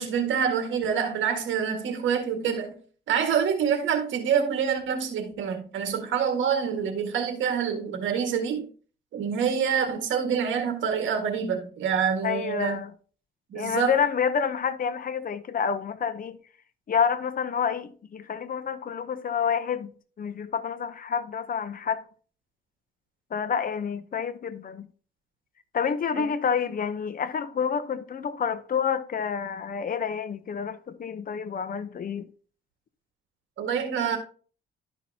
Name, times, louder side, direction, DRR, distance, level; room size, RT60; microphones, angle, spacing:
voice 1, 0.0-2.8 3.1-8.7 9.1-12.8 13.5-13.9 26.2-26.3 33.6-34.2, right 7 dB, 75° right, 1.9 m, -26 dB
voice 2, 12.2-12.9 13.5-16.4 16.9-19.9 20.2-22.0 23.3-24.9 25.7-32.3, left 7 dB, 45° left, 0.8 m, -28 dB
12.0 x 5.6 x 2.8 m
cardioid pair, 90°, 20 cm